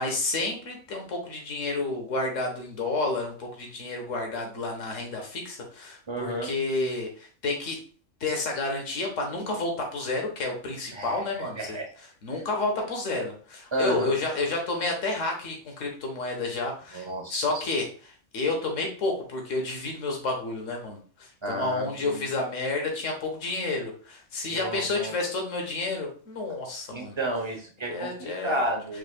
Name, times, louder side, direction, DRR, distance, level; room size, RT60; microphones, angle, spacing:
voice 1, 0.0-7.8 8.2-11.8 12.2-27.2 27.9-28.6, left 3 dB, 70° left, 2 dB, 1.5 m, -30 dB
voice 2, 6.1-6.5 10.9-11.9 13.7-14.2 16.9-17.4 21.4-22.3 24.5-25.1 26.9-29.0, right 1 dB, 25° right, 2 dB, 0.8 m, -32 dB
4.9 x 4.5 x 2.2 m, 0.41 s
omnidirectional pair, 1.4 m